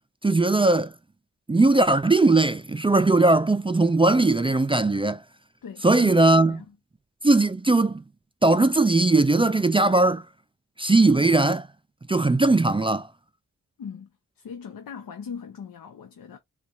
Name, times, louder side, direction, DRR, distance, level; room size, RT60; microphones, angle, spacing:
voice 1, 0.2-0.9 1.5-5.2 5.8-6.6 7.2-8.0 8.4-10.3 10.8-11.7 12.1-13.1, right 2 dB, 15° right, 0.3 m, -19 dB
voice 2, 5.6-6.7 13.8-16.4, left 6 dB, 90° left, 0.7 m, -40 dB
4.1 x 2.4 x 2.3 m
wide cardioid pair, 70°, 33 cm